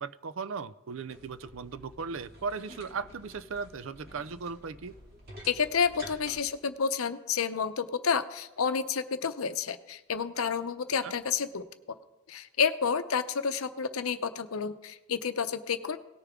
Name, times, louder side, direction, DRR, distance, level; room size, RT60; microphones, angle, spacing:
voice 1, 0.0-4.9 11.0-11.1, right 5 dB, 65° right, 14 dB, 0.5 m, -37 dB
sound 1, 1.1-6.4, equal, 45° right, 2.7 m, -50 dB
voice 2, 5.5-11.6 12.3-16.0, left 6 dB, 75° left, 10 dB, 0.7 m, -30 dB
18.0 x 6.7 x 3.6 m, 1.1 s
head